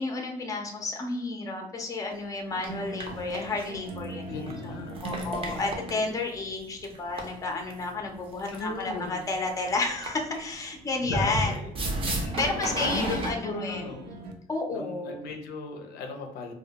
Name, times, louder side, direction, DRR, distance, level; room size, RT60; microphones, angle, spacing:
voice 1, 0.0-4.7 5.0-11.6 12.4-13.8 14.5-15.2, left 3 dB, 20° left, 3 dB, 0.5 m, -31 dB
sound 1, 2.1-2.2 2.6-2.7 3.0-4.0 4.5-4.6 4.9-6.0 6.8-7.7 8.4-9.0 9.3-9.5 10.0-10.4 11.1-13.3, right 1 dB, 35° right, 0.6 m, -32 dB
sound 2, 2.5-14.3, right 1 dB, 80° right, 0.4 m, -43 dB
voice 2, 4.3-5.6 8.5-9.2 11.1-11.7 12.1-14.2 14.7-16.5, left 3 dB, 75° left, 4 dB, 0.5 m, -37 dB
2.2 x 2.1 x 2.8 m, 0.81 s
cardioid pair, 110°, 17 cm